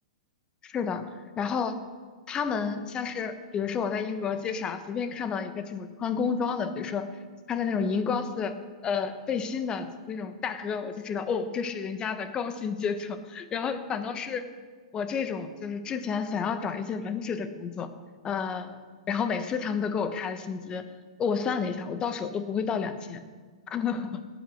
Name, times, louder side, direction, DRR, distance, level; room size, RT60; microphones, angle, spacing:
voice 1, 0.6-1.1 1.4-1.8 2.3-7.1 7.5-8.5 8.8-14.4 14.9-17.9 18.2-18.8 19.1-20.8 21.2-23.2 23.7-24.2, left 6 dB, 25° left, 10 dB, 1.2 m, -30 dB
17.5 x 8.6 x 6.6 m, 1.5 s
hypercardioid pair, 110°, 3 cm